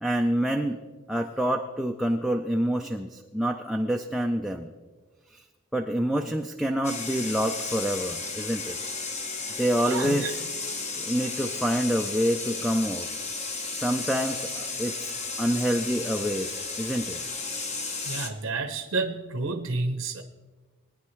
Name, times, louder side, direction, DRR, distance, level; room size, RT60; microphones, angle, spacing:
voice 1, 0.0-0.8 1.1-4.7 5.3-5.4 5.7-8.8 9.6-10.4 10.9-13.1 13.7-15.1 15.4-17.2, equal, ahead, 2 dB, 0.4 m, -27 dB
sound 1, 6.8-18.3, left 4 dB, 35° left, 1.0 m, -34 dB
voice 2, 9.9-10.3 18.1-20.2, right 3 dB, 80° right, 6 dB, 0.9 m, -30 dB
21.0 x 10.0 x 3.2 m, 1.3 s
head